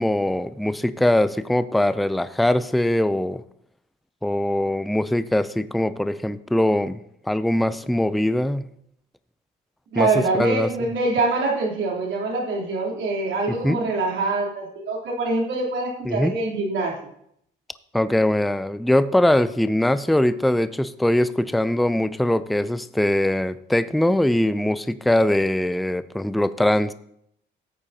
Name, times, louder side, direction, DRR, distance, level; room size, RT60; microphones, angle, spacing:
voice 1, 0.0-3.4 4.2-7.0 7.2-8.7 10.0-10.7 13.5-13.8 16.1-16.4 17.9-26.9, left 1 dB, ahead, 14 dB, 0.4 m, -22 dB
voice 2, 9.9-17.0, right 3 dB, 70° right, -2 dB, 3.3 m, -24 dB
14.0 x 8.6 x 2.8 m, 0.72 s
cardioid pair, 90°, 20 cm